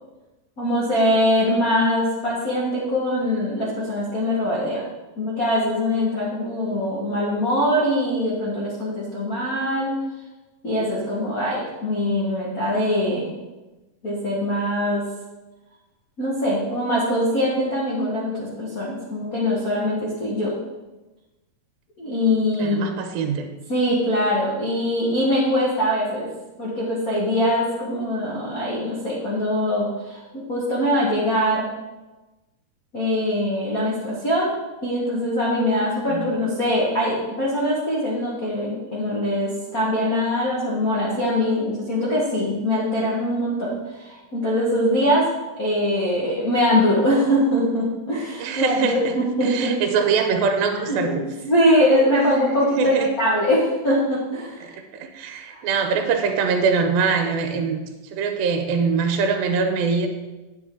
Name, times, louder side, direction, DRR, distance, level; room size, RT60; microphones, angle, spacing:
voice 1, 0.6-4.8 5.2-9.9 10.6-13.3 14.0-15.0 16.2-20.5 22.0-22.9 23.7-26.3 26.6-31.7 32.9-34.5 34.8-45.2 45.6-49.8 50.9-51.0 51.2-54.7, left 1 dB, 85° left, -6 dB, 0.7 m, -22 dB
voice 2, 22.6-23.5 36.1-36.3 48.4-49.2 49.4-51.2 52.6-53.1 54.6-60.1, right 5 dB, 85° right, 5 dB, 2.6 m, -23 dB
8.9 x 7.4 x 3.7 m, 1.1 s
omnidirectional pair, 4.2 m